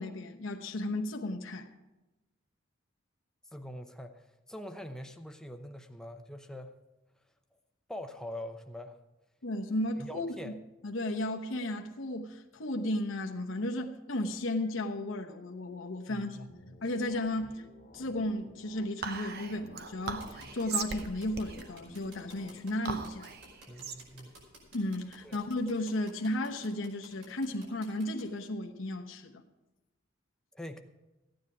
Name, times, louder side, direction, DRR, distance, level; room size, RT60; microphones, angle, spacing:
voice 1, 0.0-1.7 9.4-10.5 10.8-16.4 16.8-17.6 17.9-23.3 24.7-29.4, left 1 dB, 75° left, 2 dB, 1.0 m, -34 dB
voice 2, 3.5-6.8 7.9-9.0 10.0-10.5 16.1-16.8 23.7-24.3 25.2-25.4 30.5-30.8, left 1 dB, 5° left, 6 dB, 0.7 m, -44 dB
sound 1, 16.5-18.9 19.5-22.5, left 1 dB, 50° left, 1.3 m, -54 dB
Whispering, 19.0-25.7, right 5 dB, 50° right, 0.9 m, -40 dB
sound 2, 20.2-28.2, right 1 dB, 70° right, 5.3 m, -53 dB
15.0 x 9.6 x 4.9 m, 1.1 s
head